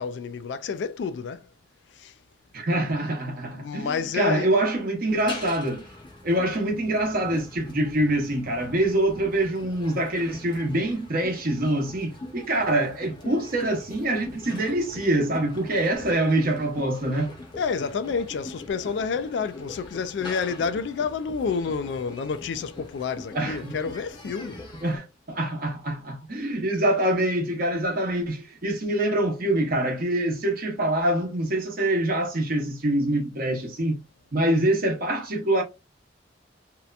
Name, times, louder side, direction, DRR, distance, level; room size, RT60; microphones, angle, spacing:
voice 1, 0.0-1.4 2.0-2.1 3.5-4.6 17.6-24.6, left 5 dB, 65° left, 0.3 m, -29 dB
voice 2, 2.5-5.8 6.2-17.3 23.3-23.7 24.8-34.0 34.3-35.6, right 1 dB, 50° right, 0.8 m, -25 dB
sound 1, 5.1-25.0, left 2 dB, 25° left, 0.7 m, -43 dB
2.7 x 2.1 x 2.4 m
head